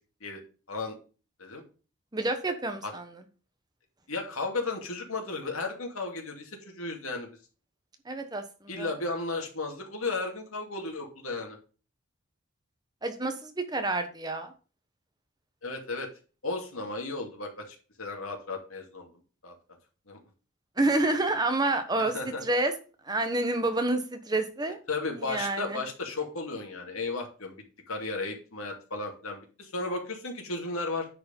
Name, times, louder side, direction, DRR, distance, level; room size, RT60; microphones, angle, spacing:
voice 1, 2.1-3.1 8.1-8.9 13.0-14.5 20.8-22.1 22.4-22.7 23.1-24.8 25.2-25.8, right 2 dB, 20° right, 7 dB, 1.1 m, -28 dB
voice 2, 4.1-7.3 8.7-11.6 15.6-16.1 16.4-19.1 19.4-19.5 20.1-20.2 22.0-22.4 24.9-31.1, left 3 dB, 90° left, 1 dB, 2.5 m, -34 dB
10.0 x 4.8 x 5.4 m, 0.36 s
head